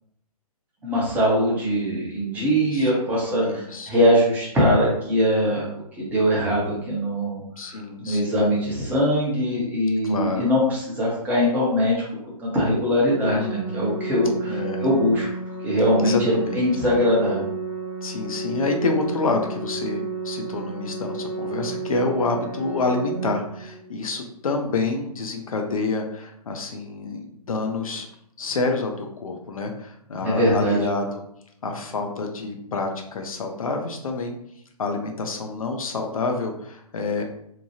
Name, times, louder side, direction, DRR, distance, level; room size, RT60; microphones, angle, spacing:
voice 1, 0.8-5.6 6.0-7.8 8.0-12.0 12.4-15.3 15.6-17.4 30.2-30.8, equal, 10° right, -6 dB, 0.8 m, -22 dB
voice 2, 2.3-2.9 3.4-3.9 7.6-8.5 10.0-10.5 13.3-13.9 14.5-14.9 16.0-16.6 18.0-28.1 28.4-31.2 31.6-34.4 34.8-37.2, left 3 dB, 60° left, 3 dB, 0.5 m, -28 dB
Organ, 13.2-24.2, right 3 dB, 50° right, 1.0 m, -32 dB
2.8 x 2.2 x 2.8 m, 0.72 s
figure-of-eight pair, 125°, 20 cm